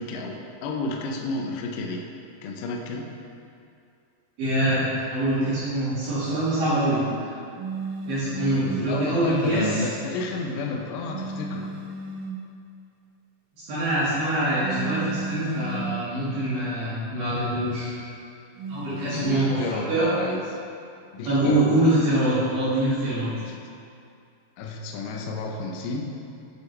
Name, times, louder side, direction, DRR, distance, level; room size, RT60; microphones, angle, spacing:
voice 1, 0.0-2.1 2.4-3.1 8.8-11.7 19.0-20.4 21.1-21.7 23.4-23.5 24.6-26.1, left 3 dB, 80° left, 1 dB, 1.9 m, -31 dB
voice 2, 4.4-7.0 8.1-9.8 13.6-17.9 18.7-19.6 19.9-20.1 21.2-23.3, right 1 dB, 70° right, -13 dB, 3.4 m, -24 dB
sound 1, 7.6-8.9 11.1-12.5 14.6-16.1 18.6-19.2, right 3 dB, 85° right, 2.7 m, -33 dB
9.4 x 4.8 x 3.1 m, 2.5 s
omnidirectional pair, 4.4 m